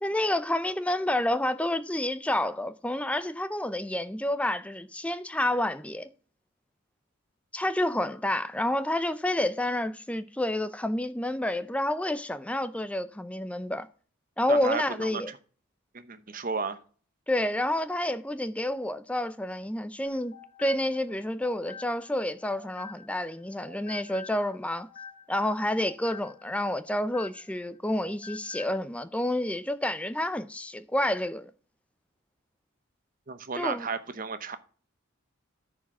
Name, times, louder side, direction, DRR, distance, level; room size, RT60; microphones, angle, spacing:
voice 1, 0.0-6.1 7.5-13.9 14.4-15.3 17.3-20.3 20.6-24.9 25.3-31.5 33.6-33.9, left 1 dB, 5° left, 0.5 m, -29 dB
voice 2, 14.5-15.2 15.9-16.8 33.3-34.6, right 5 dB, 40° right, 0.8 m, -33 dB
sound 1, 20.0-23.3 23.6-27.7 27.9-28.8, left 5 dB, 35° left, 2.4 m, -48 dB
9.6 x 4.8 x 6.0 m
head